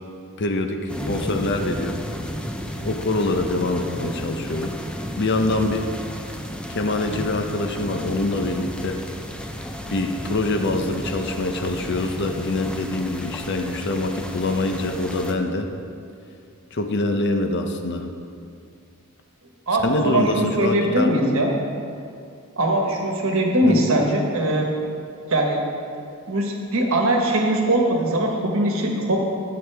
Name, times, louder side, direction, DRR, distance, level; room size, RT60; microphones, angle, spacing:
voice 1, 0.4-2.0 2.8-4.7 5.2-5.9 6.7-9.0 9.9-15.7 16.7-18.1 19.8-21.1 23.6-23.9, left 2 dB, 55° left, 5 dB, 0.7 m, -24 dB
sound 1, 0.9-15.3, equal, 5° left, 0.5 m, -33 dB
voice 2, 19.7-21.5 22.6-24.7 25.3-25.6 26.3-29.2, right 1 dB, 65° right, 1 dB, 1.3 m, -21 dB
11.0 x 7.7 x 3.4 m, 2.4 s
head